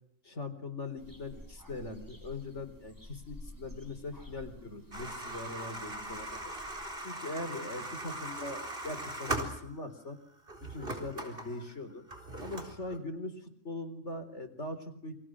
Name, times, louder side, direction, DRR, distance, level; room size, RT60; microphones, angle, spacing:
voice 1, 0.2-6.4 7.0-10.2 10.7-12.0 12.4-15.1, left 2 dB, 65° left, 8 dB, 4.2 m, -41 dB
sound 1, 1.0-6.8, left 1 dB, 15° right, 6.6 m, -51 dB
sound 2, 4.9-10.0 10.5-13.0, right 2 dB, 45° right, 4.5 m, -40 dB
29.5 x 24.5 x 6.3 m, 0.66 s
omnidirectional pair, 1.3 m